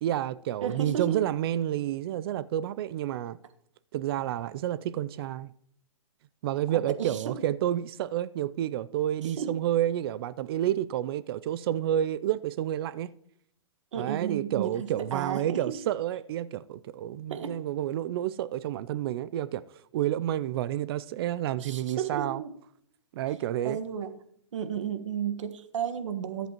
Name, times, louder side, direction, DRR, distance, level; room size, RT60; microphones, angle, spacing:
voice 1, 0.0-3.4 3.9-5.5 6.4-13.1 14.0-19.6 19.9-22.4 23.1-23.8, right 12 dB, 50° right, 0.5 m, -30 dB
voice 2, 0.6-1.2 7.0-7.3 9.2-9.6 13.9-14.8 15.1-15.6 17.3-17.6 21.6-22.5 23.6-24.1 24.5-26.5, right 8 dB, 80° right, 1.6 m, -33 dB
21.5 x 8.1 x 3.0 m
hypercardioid pair, 140°, 16 cm